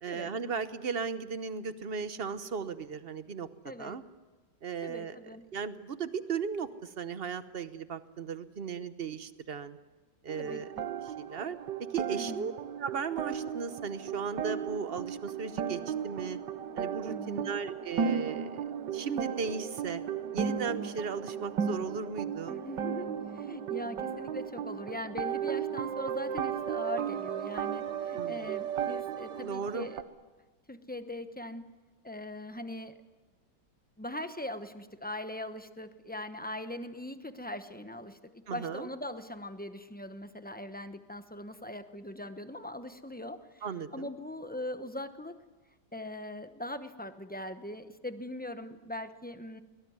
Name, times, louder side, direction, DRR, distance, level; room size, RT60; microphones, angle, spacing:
voice 1, 0.0-3.5 3.8-4.0 4.6-5.2 5.5-9.8 10.2-10.7 11.1-11.6 11.9-12.5 12.8-16.4 16.7-18.6 18.9-20.0 20.3-22.6 28.1-28.5 29.4-29.9 38.5-38.9 43.6-44.1, right 5 dB, 45° right, 13 dB, 0.9 m, -36 dB
voice 2, 3.6-4.0 4.8-5.4 10.4-10.9 12.1-12.5 17.1-17.5 22.5-30.0 30.7-31.7 32.0-32.9 34.0-43.6 43.9-45.4 45.9-49.6, left 1 dB, 10° left, 9 dB, 0.6 m, -41 dB
sound 1, 10.3-30.0, right 8 dB, 80° right, 1.7 m, -35 dB
22.5 x 19.0 x 9.5 m, 1.2 s
omnidirectional pair, 1.9 m